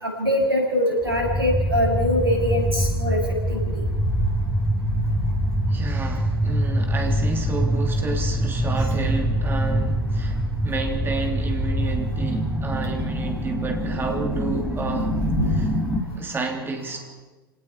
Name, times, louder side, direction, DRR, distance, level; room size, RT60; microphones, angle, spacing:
voice 1, 0.0-3.2 3.5-3.6, left 1 dB, 85° right, 1 dB, 6.9 m, -23 dB
sound 1, 1.0-16.0, equal, 5° right, 2.7 m, -24 dB
voice 2, 5.7-15.2 15.5-15.7 16.1-17.1, right 3 dB, 20° right, 3 dB, 3.2 m, -30 dB
29.5 x 19.0 x 4.7 m, 1.3 s
figure-of-eight pair, 85°, 12 cm